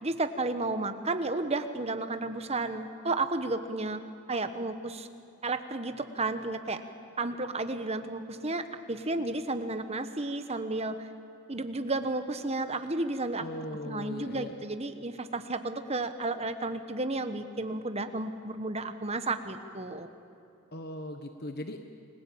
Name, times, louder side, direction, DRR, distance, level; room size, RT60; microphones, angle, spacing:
voice 1, 0.0-4.0 4.3-5.1 5.4-6.8 7.2-11.1 11.5-20.1, right 2 dB, 30° right, 9 dB, 1.3 m, -32 dB
voice 2, 13.4-14.5 20.7-21.9, left 1 dB, 45° left, 6 dB, 1.2 m, -39 dB
30.0 x 21.0 x 8.7 m, 2.6 s
head